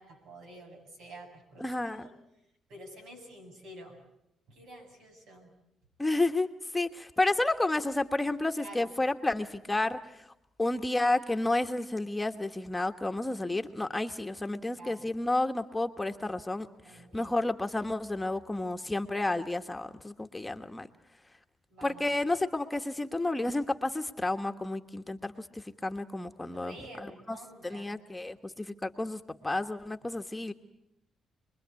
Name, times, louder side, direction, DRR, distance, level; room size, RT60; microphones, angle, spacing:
voice 1, 0.0-2.1 2.7-4.0 4.5-5.5 8.6-8.9 14.8-15.1 16.8-17.4 21.7-22.0 26.5-28.0, right 1 dB, 80° right, 5 dB, 7.4 m, -49 dB
voice 2, 1.6-2.1 6.0-6.5 6.7-10.2 10.6-20.9 21.8-27.4 27.6-30.5, left 2 dB, 15° left, 6 dB, 1.4 m, -31 dB
28.0 x 21.5 x 8.4 m, 0.82 s
cardioid pair, 90°, 0 cm